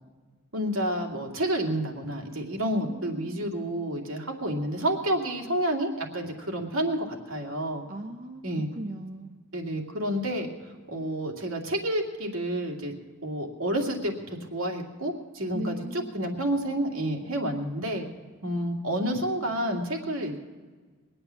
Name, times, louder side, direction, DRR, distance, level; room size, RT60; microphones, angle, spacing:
voice 1, 0.5-7.8 8.4-8.7 9.5-10.5 10.9-12.9 13.2-14.2 14.5-15.8 16.1-18.0 18.4-20.4, right 1 dB, 75° right, 1 dB, 2.4 m, -29 dB
voice 2, 2.8-3.4 7.9-9.4 15.5-16.1, right 1 dB, 40° right, 2 dB, 0.9 m, -38 dB
22.0 x 8.9 x 7.1 m, 1.4 s
head